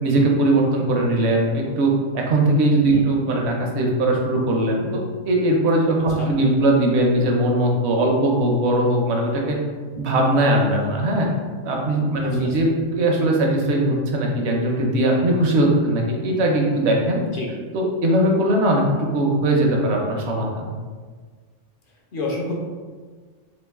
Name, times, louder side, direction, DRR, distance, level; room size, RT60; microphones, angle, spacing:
voice 1, 0.0-5.0 5.3-9.6 10.0-11.3 11.6-17.2 17.7-20.7, right 1 dB, 65° right, 0 dB, 0.8 m, -20 dB
voice 2, 12.2-12.6 17.3-17.5 22.1-22.5, left 2 dB, 55° left, -2 dB, 0.6 m, -30 dB
3.0 x 2.4 x 3.5 m, 1.5 s
omnidirectional pair, 1.3 m